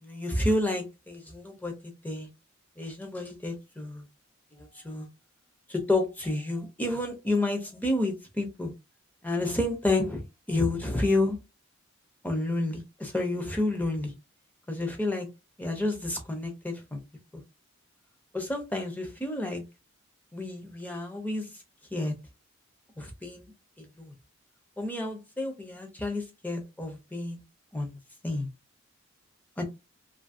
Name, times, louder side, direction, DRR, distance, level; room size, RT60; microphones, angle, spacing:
voice 1, 0.0-2.3 2.8-4.0 4.5-5.1 5.7-8.7 9.2-10.2 10.5-11.4 12.2-14.1 14.7-15.3 15.6-17.0 18.3-19.6 20.3-21.5 21.9-22.1 23.0-23.5 23.8-24.1 24.8-27.4 27.7-28.0 28.2-28.5 29.6-29.7, left 2 dB, 10° left, 0.5 m, -30 dB
2.6 x 2.5 x 2.5 m
head